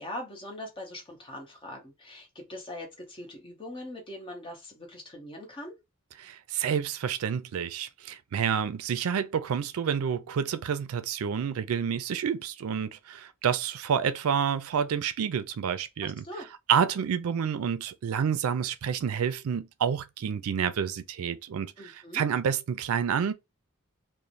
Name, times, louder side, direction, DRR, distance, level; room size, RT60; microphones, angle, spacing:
voice 1, 0.0-5.7 16.0-16.5 21.8-22.2, left 1 dB, 25° left, 0.9 m, -41 dB
voice 2, 6.2-16.2 16.7-23.3, right 7 dB, 80° right, 0.4 m, -29 dB
3.0 x 2.0 x 2.5 m
head